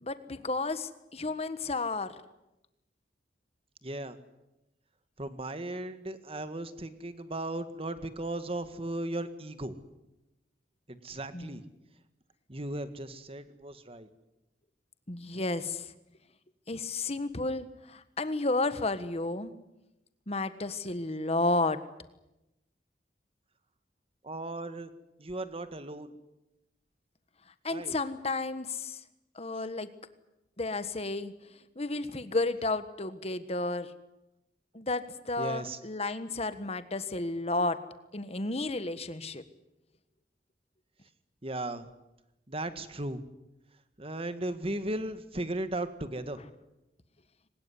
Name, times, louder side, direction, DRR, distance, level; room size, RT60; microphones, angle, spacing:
voice 1, 0.0-2.2 11.3-11.6 15.1-15.9 16.7-19.5 20.3-21.8 27.6-29.0 29.3-29.9 30.6-31.3 31.7-33.9 34.7-37.8 38.1-39.4, left 2 dB, 35° left, 12 dB, 1.4 m, -32 dB
voice 2, 3.8-4.2 5.2-9.7 10.9-11.6 12.5-14.1 24.2-24.9 25.2-26.1 27.7-27.9 35.4-35.8 41.4-41.9 42.5-43.2 44.0-46.4, right 1 dB, 35° right, 11 dB, 1.7 m, -36 dB
22.5 x 20.0 x 9.7 m, 0.93 s
head